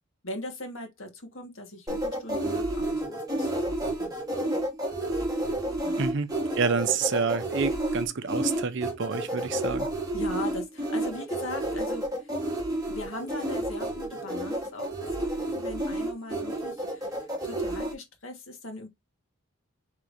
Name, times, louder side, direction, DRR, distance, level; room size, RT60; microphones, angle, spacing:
voice 1, 0.2-4.2 5.8-6.1 10.1-12.4 12.9-18.9, left 1 dB, 65° left, 1.6 m, -40 dB
sound 1, 1.9-17.9, right 1 dB, 15° right, 1.3 m, -30 dB
voice 2, 6.6-9.9, right 5 dB, 55° right, 0.6 m, -28 dB
4.7 x 3.7 x 2.6 m
head